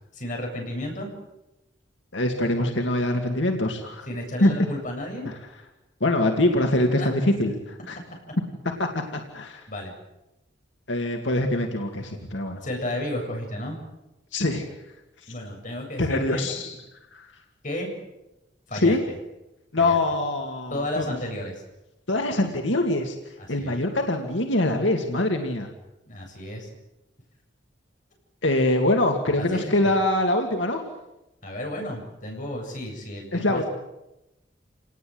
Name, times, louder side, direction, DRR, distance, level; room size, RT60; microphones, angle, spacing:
voice 1, 0.1-1.1 4.1-5.3 7.0-7.1 9.7-9.9 12.6-13.8 15.3-16.5 17.6-17.9 18.7-18.9 19.8-20.0 20.7-21.5 23.4-23.8 26.1-26.7 29.4-29.9 31.4-33.7, left 1 dB, 45° left, 1 dB, 7.9 m, -32 dB
voice 2, 2.1-4.1 4.4-4.5 5.3-5.4 6.0-8.0 8.8-9.6 10.9-12.6 14.3-14.7 15.3-15.4 16.0-16.7 17.1-17.3 18.7-19.0 19.7-21.0 22.1-23.2 23.5-25.7 28.4-30.8 33.3-33.6, left 1 dB, 90° left, 3 dB, 2.4 m, -24 dB
28.5 x 19.5 x 8.0 m, 0.95 s
head